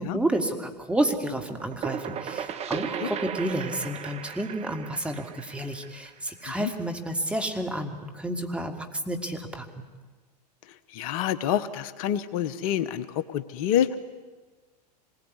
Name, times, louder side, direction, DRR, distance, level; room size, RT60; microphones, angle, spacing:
voice 1, 0.0-9.8, right 1 dB, 5° right, 4 dB, 2.8 m, -30 dB
sound 1, 1.4-6.9, right 8 dB, 30° right, 1.5 m, -36 dB
voice 2, 10.9-13.1 13.3-14.0, left 10 dB, 55° left, 15 dB, 1.1 m, -27 dB
26.0 x 20.5 x 9.8 m, 1.3 s
hypercardioid pair, 100°, 21 cm